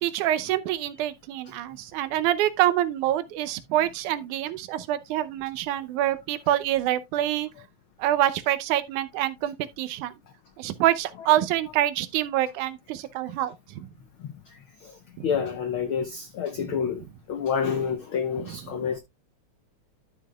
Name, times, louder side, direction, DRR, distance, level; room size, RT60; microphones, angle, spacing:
voice 1, 0.0-7.5 8.0-10.1 10.6-13.9 15.2-15.3 16.6-17.1 18.4-18.9, right 13 dB, 85° right, 2.2 m, -26 dB
voice 2, 15.2-17.0 17.3-19.0, left 7 dB, 85° left, 1.1 m, -28 dB
12.5 x 6.5 x 2.3 m
omnidirectional pair, 3.4 m